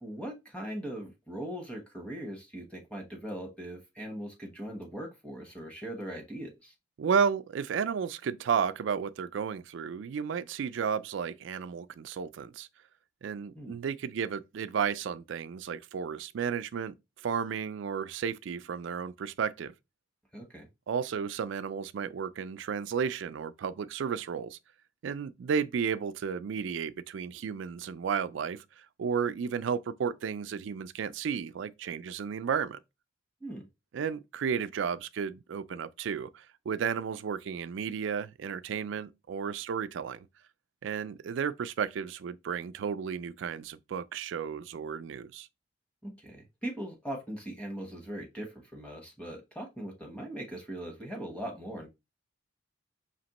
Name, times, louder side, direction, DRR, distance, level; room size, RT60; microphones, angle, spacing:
voice 1, 0.0-6.7 13.5-13.8 20.3-20.7 33.4-33.7 46.0-51.9, right 1 dB, 5° left, 0.9 m, -40 dB
voice 2, 7.0-12.7 13.2-16.9 17.2-19.7 20.9-24.6 25.0-32.8 33.9-40.3 40.8-45.5, right 6 dB, 65° right, 0.3 m, -33 dB
5.0 x 2.9 x 2.9 m
head